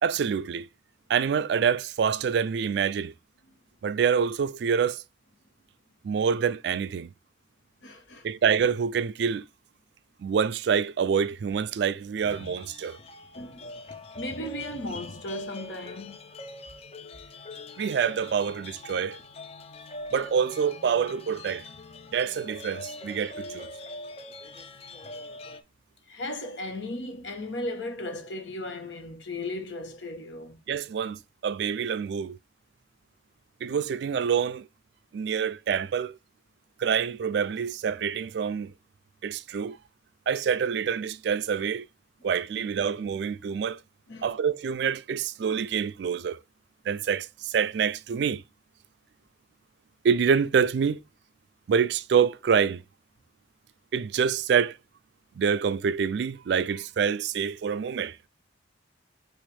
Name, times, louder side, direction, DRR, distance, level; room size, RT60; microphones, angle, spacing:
voice 1, 0.0-0.7 1.1-3.1 3.8-5.0 6.0-7.1 8.2-9.5 10.2-13.0 17.8-19.2 20.1-21.6 22.1-23.7 30.7-32.4 33.6-34.7 35.1-36.1 36.8-38.7 39.2-39.8 40.3-41.9 42.2-43.8 44.2-46.4 46.9-48.4 50.0-51.0 51.7-52.8 53.9-54.8 55.4-58.2, right 7 dB, 60° right, 0.3 m, -26 dB
voice 2, 7.8-8.3 13.3-13.7 14.1-16.2 26.1-30.6 42.5-42.6 44.1-44.3, left 1 dB, 75° left, 1.1 m, -36 dB
sound 1, 12.2-25.6, left 2 dB, 30° left, 0.4 m, -43 dB
6.0 x 2.5 x 3.3 m
head